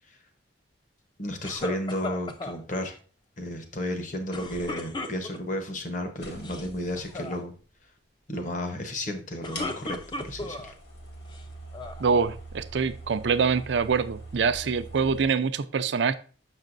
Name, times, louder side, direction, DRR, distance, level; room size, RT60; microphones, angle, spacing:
voice 1, 1.2-3.0 3.4-7.5 8.3-10.7, left 1 dB, 40° left, 6 dB, 0.9 m, -33 dB
sound 1, 1.4-2.6 4.3-5.6 6.3-6.7 7.0-7.4 9.2-10.7 11.3-12.0, left 2 dB, 25° left, 0.5 m, -36 dB
sound 2, 6.2-7.3 8.6-8.7 9.5-15.3, right 1 dB, 60° left, 1.7 m, -43 dB
voice 2, 12.0-16.1, right 5 dB, 70° right, 12 dB, 0.4 m, -25 dB
6.5 x 6.4 x 2.5 m, 0.38 s
head